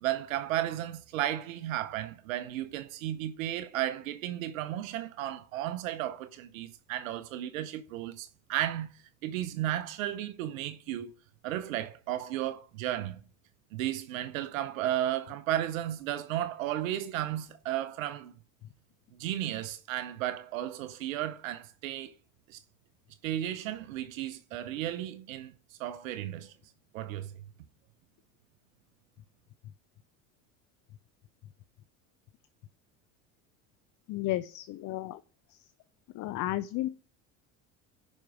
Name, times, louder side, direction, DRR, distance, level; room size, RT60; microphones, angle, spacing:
voice 1, 0.0-8.9 9.2-11.1 11.4-13.2 13.7-18.3 19.2-22.1 22.5-22.6 23.2-25.5 25.8-26.5 26.9-27.3, right 12 dB, 85° right, 0.8 m, -34 dB
voice 2, 34.1-35.2 35.5-35.6 36.1-36.9, left 15 dB, 45° left, 0.6 m, -33 dB
10.5 x 5.3 x 4.7 m
hypercardioid pair, 85°, 40 cm